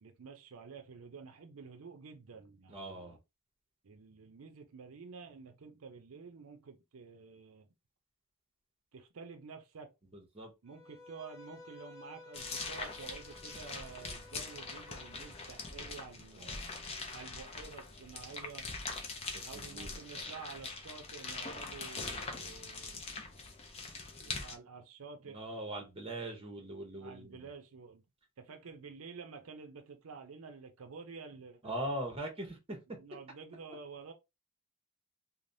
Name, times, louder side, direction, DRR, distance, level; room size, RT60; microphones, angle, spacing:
voice 1, 0.0-3.2 3.8-7.7 8.9-9.9 10.6-16.6 17.1-18.7 19.4-23.1 24.2-25.4 27.0-28.0 28.4-31.9 32.9-34.1, right 5 dB, 80° right, 0.5 m, -50 dB
voice 2, 2.7-3.2 10.1-10.5 16.4-17.0 19.3-20.3 25.3-27.5 31.6-32.8, right 1 dB, 25° right, 0.7 m, -41 dB
Bowed string instrument, 10.7-15.7, left 2 dB, 15° left, 0.8 m, -55 dB
sound 1, 12.3-24.5, left 3 dB, 30° left, 0.5 m, -43 dB
3.2 x 2.1 x 2.6 m
head